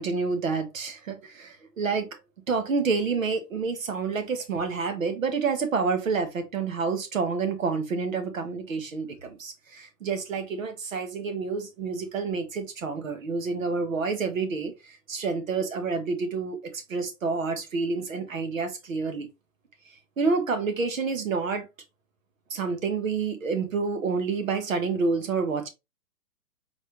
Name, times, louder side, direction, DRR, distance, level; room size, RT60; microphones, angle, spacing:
voice 1, 0.0-2.1 2.5-19.3 20.2-21.7 22.5-25.7, right 4 dB, 55° right, 1.1 m, -28 dB
4.2 x 3.2 x 3.0 m
hypercardioid pair, 175°, 49 cm